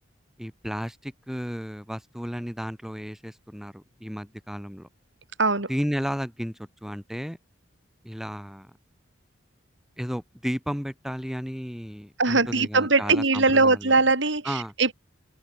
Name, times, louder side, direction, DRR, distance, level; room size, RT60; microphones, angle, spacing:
voice 1, 0.4-4.9 5.7-7.4 8.0-8.7 10.0-14.0 14.4-14.7, equal, ahead, 7.7 m, -33 dB
voice 2, 12.2-14.9, right 3 dB, 60° right, 3.2 m, -21 dB
open air
head